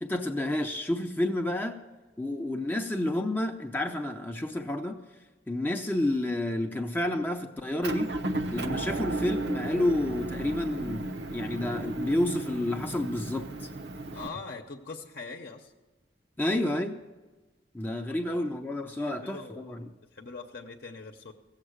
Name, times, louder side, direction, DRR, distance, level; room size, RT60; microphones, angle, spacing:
voice 1, 0.0-1.8 2.2-5.0 5.5-8.1 8.5-13.7 16.4-17.0 17.7-19.9, left 1 dB, 10° left, 3 dB, 0.6 m, -30 dB
Motor vehicle (road) / Engine, 7.8-14.3, right 2 dB, 70° right, 0.9 m, -34 dB
voice 2, 14.1-15.7 19.0-21.3, left 4 dB, 55° left, 3 dB, 0.8 m, -43 dB
15.5 x 7.4 x 8.0 m, 1.2 s
head